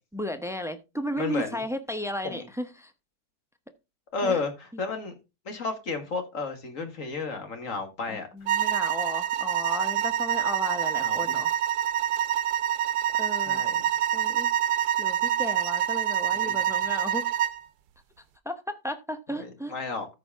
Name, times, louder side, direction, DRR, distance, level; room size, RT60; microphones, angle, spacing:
voice 1, 0.1-2.9 4.2-4.4 8.1-11.5 13.2-13.6 14.1-14.5 15.0-17.3 18.4-19.7, left 1 dB, 5° right, 0.4 m, -34 dB
voice 2, 1.2-1.6 2.2-2.5 4.1-5.1 5.5-8.3 11.0-11.4 13.5-13.9 16.3-16.6 19.4-20.1, left 4 dB, 55° left, 1.9 m, -32 dB
sound 1, 8.5-17.6, right 11 dB, 85° right, 1.2 m, -26 dB
13.5 x 4.9 x 3.5 m
omnidirectional pair, 1.6 m